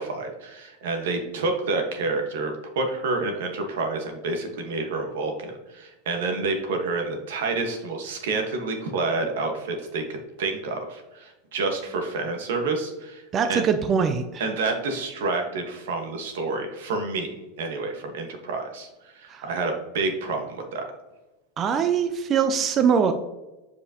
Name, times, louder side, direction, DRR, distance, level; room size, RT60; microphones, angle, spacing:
voice 1, 0.0-13.2 13.5-13.7 14.4-20.8, right 3 dB, 85° right, 4 dB, 1.3 m, -29 dB
voice 2, 13.3-14.4 19.3-19.4 21.6-23.1, right 6 dB, 20° right, 8 dB, 0.3 m, -22 dB
7.8 x 4.9 x 2.8 m, 1.1 s
supercardioid pair, 175°, 0 cm